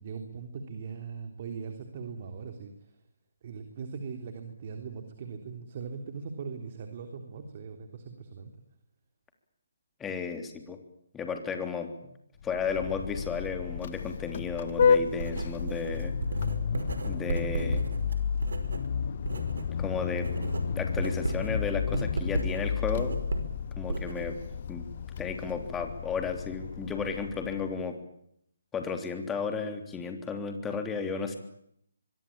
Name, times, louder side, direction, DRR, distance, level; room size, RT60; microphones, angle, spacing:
voice 1, 0.0-2.7 3.4-8.5, right 5 dB, 40° right, 6 dB, 3.5 m, -40 dB
voice 2, 10.0-10.8 11.1-11.9 12.4-16.1 17.0-17.8 19.8-20.3 20.7-23.2 23.7-24.4 24.7-24.8 25.2-27.9 28.7-31.4, left 5 dB, 10° left, 6 dB, 3.4 m, -33 dB
Vehicle horn car horn honking, 12.4-27.8, left 7 dB, 45° left, 1.4 m, -31 dB
Writing, 14.8-19.7 20.0-24.6, right 3 dB, 70° right, 5.3 m, -35 dB
24.5 x 23.5 x 8.8 m, 0.73 s
figure-of-eight pair, 150°, 0 cm